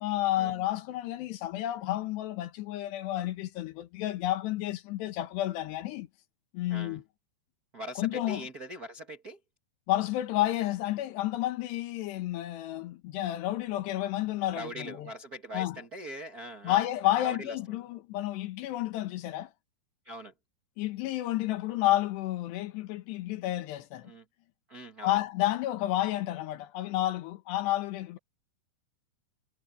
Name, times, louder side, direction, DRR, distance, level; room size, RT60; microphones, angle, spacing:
voice 1, 0.0-6.1 6.5-7.0 8.0-8.5 9.9-15.1 15.5-15.8 16.6-19.5 20.8-24.1 25.0-28.2, left 14 dB, 85° left, 3.4 m, -31 dB
voice 2, 7.7-9.4 14.5-16.8 17.2-17.5 20.0-20.3 24.0-24.2 24.7-25.2, equal, 50° right, 1.0 m, -41 dB
omnidirectional pair, 4.8 m